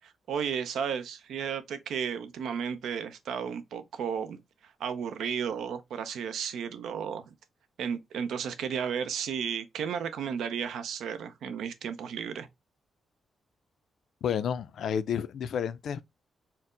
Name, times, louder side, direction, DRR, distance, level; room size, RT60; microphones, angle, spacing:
voice 1, 0.0-7.3 7.8-12.5, right 7 dB, 90° right, 0.5 m, -33 dB
voice 2, 14.2-16.0, left 8 dB, 65° left, 0.3 m, -30 dB
4.3 x 2.0 x 3.7 m
wide cardioid pair, 175°, 0 cm